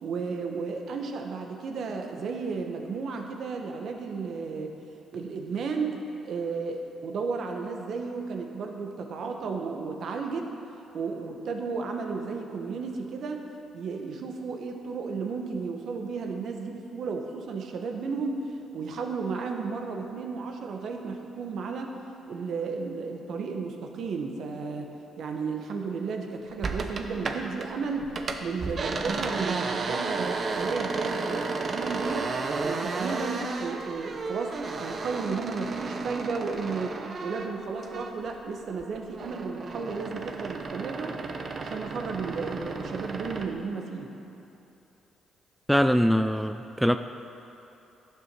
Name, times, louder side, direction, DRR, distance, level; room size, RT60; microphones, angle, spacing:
voice 1, 0.0-4.8 5.1-10.5 10.9-13.4 13.7-21.9 22.3-24.9 25.2-28.1 28.4-32.3 32.6-37.0 37.2-41.2 41.6-44.1, right 4 dB, 65° right, 3 dB, 1.1 m, -33 dB
sound 1, 26.6-27.7 28.0-38.4 38.7-43.5, right 4 dB, 45° right, 0.8 m, -33 dB
voice 2, 45.7-47.0, equal, ahead, 9 dB, 0.3 m, -22 dB
11.5 x 6.9 x 6.2 m, 2.9 s
cardioid pair, 90°, 0 cm